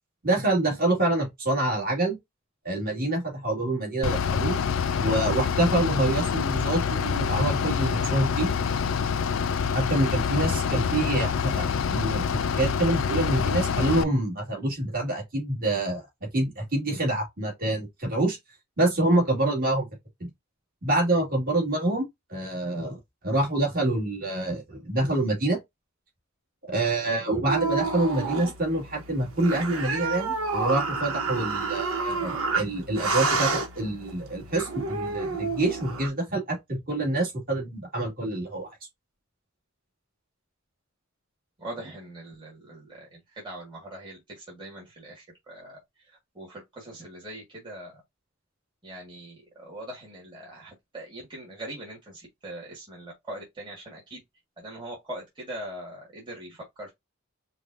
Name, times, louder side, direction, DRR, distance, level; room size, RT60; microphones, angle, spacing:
voice 1, 0.2-2.2 2.6-4.6 5.0-8.5 9.7-16.0 16.3-18.4 18.8-19.9 20.2-20.3 20.8-25.6 26.7-38.7, right 2 dB, 45° right, 2.2 m, -26 dB
Bus / Idling, 4.0-14.0, left 6 dB, 70° left, 0.4 m, -26 dB
sound 1, 27.5-36.1, right 4 dB, 90° right, 1.1 m, -29 dB
voice 2, 41.6-45.8 46.4-48.0 48.8-54.2 54.6-56.9, right 1 dB, 25° right, 1.6 m, -41 dB
5.2 x 2.4 x 2.6 m
head